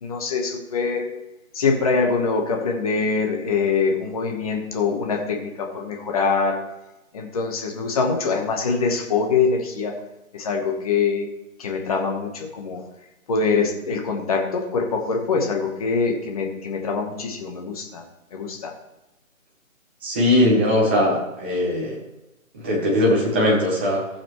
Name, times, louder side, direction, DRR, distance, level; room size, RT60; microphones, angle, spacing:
voice 1, 0.0-1.1 1.5-6.6 7.1-10.0 10.3-11.3 11.6-12.8 13.3-18.0 18.3-18.7, left 4 dB, 25° left, 2 dB, 1.1 m, -24 dB
voice 2, 20.0-22.0 22.6-24.0, left 1 dB, 10° right, -4 dB, 0.8 m, -20 dB
15.5 x 7.1 x 3.1 m, 0.97 s
hypercardioid pair, 165°, 42 cm